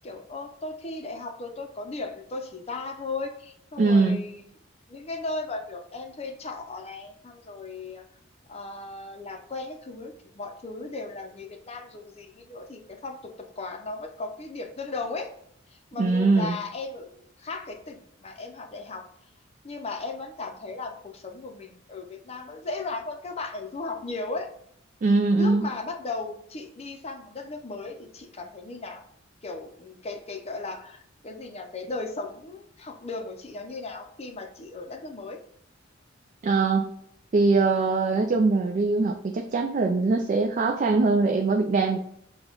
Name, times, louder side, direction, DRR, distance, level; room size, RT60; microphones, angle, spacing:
voice 1, 0.0-4.5 4.9-8.0 8.5-15.3 15.9-19.0 19.6-24.5 25.4-29.0 29.4-35.4, left 3 dB, 30° left, 5 dB, 0.5 m, -36 dB
voice 2, 3.8-4.2 16.0-16.6 25.0-25.6 36.4-36.9 37.3-42.0, right 3 dB, 40° right, 3 dB, 0.3 m, -22 dB
6.1 x 2.3 x 3.7 m, 0.70 s
head